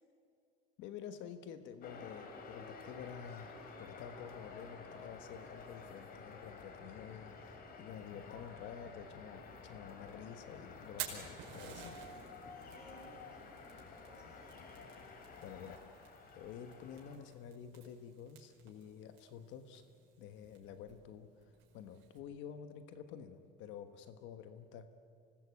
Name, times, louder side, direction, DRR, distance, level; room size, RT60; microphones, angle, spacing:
voice 1, 0.8-12.0 15.4-19.8 20.2-21.3 21.7-24.9, left 8 dB, 75° left, 9 dB, 1.3 m, -50 dB
sound 1, 1.8-17.2, left 4 dB, 50° left, 3.2 m, -52 dB
Fire, 10.7-22.2, right 9 dB, 75° right, 5.1 m, -53 dB
voice 2, 12.1-14.7, right 2 dB, 5° right, -2 dB, 7.0 m, -61 dB
25.5 x 19.0 x 8.3 m, 2.4 s
cardioid pair, 125°, 20 cm